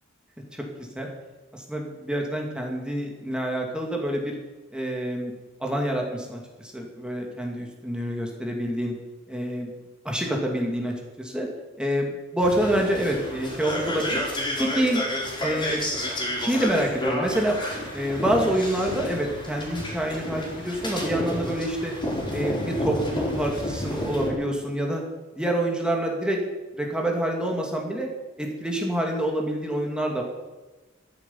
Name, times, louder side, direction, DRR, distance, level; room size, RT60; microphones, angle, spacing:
voice 1, 0.5-1.1 1.5-4.3 4.7-5.3 5.6-8.9 9.3-9.7 10.0-11.5 11.8-14.2 14.6-15.0 15.4-15.8 16.4-17.6 17.9-21.9 22.3-25.0 25.3-26.4 26.7-28.1 28.4-30.2, right 1 dB, 5° right, 0 dB, 2.4 m, -27 dB
sound 1, 12.4-24.3, left 1 dB, 25° left, 4.6 m, -30 dB
13.5 x 11.0 x 7.3 m, 1.1 s
head